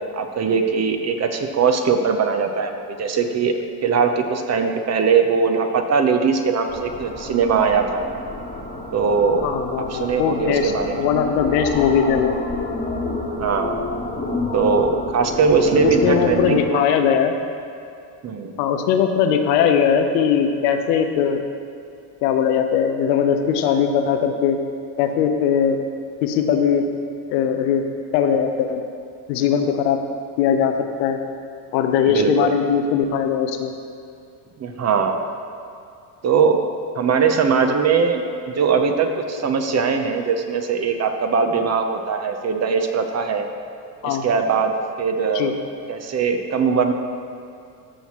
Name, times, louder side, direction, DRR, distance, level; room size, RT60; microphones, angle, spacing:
voice 1, 0.1-8.0 8.9-9.5 9.9-11.1 13.4-13.8 14.5-16.8 18.2-18.6 32.0-32.3 34.6-35.2 36.2-36.6 37.0-43.5 44.0-44.7 45.0-45.5 45.9-46.9, right 5 dB, 35° right, 5 dB, 0.8 m, -20 dB
sound 1, 6.7-16.6, left 2 dB, 15° left, 1.4 m, -29 dB
voice 2, 9.4-10.7 11.0-12.4 15.7-17.3 18.6-21.4 22.2-24.6 25.0-25.8 26.2-26.9 27.3-27.8 28.1-28.8 29.3-30.0 30.4-31.2 31.7-33.7 44.0-44.3 45.3-45.5, left 7 dB, 85° left, 6 dB, 0.8 m, -20 dB
13.5 x 5.6 x 3.1 m, 2.5 s
supercardioid pair, 85°, 48 cm